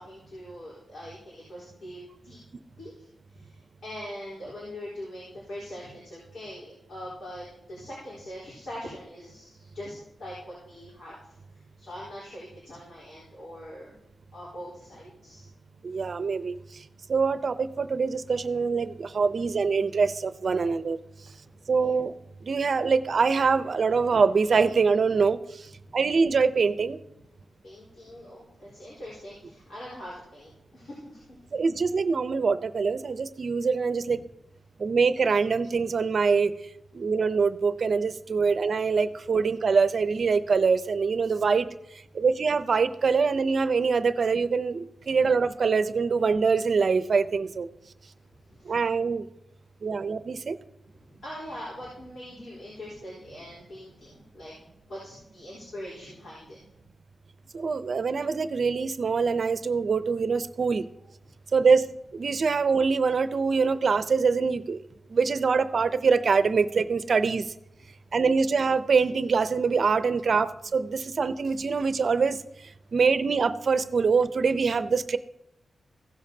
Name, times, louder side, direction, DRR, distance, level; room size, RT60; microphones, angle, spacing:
voice 1, 0.0-2.4 2.8-14.0 14.3-15.5 21.8-22.0 25.8-26.0 27.6-31.6 34.1-34.2 45.1-45.2 48.1-48.9 50.9-54.6 54.9-56.6 67.8-68.1, equal, 80° left, -7 dB, 4.0 m, -43 dB
voice 2, 15.8-16.6 17.1-21.0 21.7-22.1 22.4-25.4 25.9-27.0 31.5-34.2 34.8-36.5 36.9-41.7 42.1-47.7 48.7-49.3 49.8-50.6 57.5-60.8 61.5-61.8 62.1-64.8 65.1-67.5 68.1-72.4 72.9-75.2, right 5 dB, 60° right, 12 dB, 0.5 m, -24 dB
16.0 x 7.2 x 2.8 m, 0.83 s
cardioid pair, 85°, 0 cm